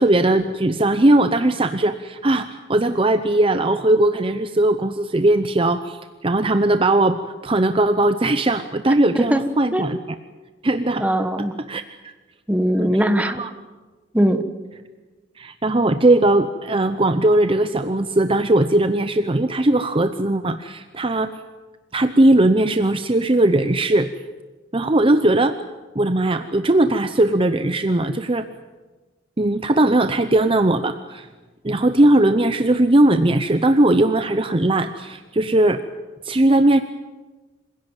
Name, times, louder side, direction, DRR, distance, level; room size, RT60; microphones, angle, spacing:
voice 1, 0.0-10.0 10.6-11.1 11.7-12.1 12.8-13.5 15.4-21.3 21.9-24.1 24.7-25.6 25.9-28.5 29.4-31.3 31.6-35.9 36.2-36.8, right 1 dB, 30° right, 9 dB, 0.7 m, -19 dB
voice 2, 11.0-11.5 12.5-13.5 14.1-14.4, equal, 10° right, 8 dB, 1.3 m, -20 dB
26.0 x 16.5 x 9.0 m, 1.3 s
head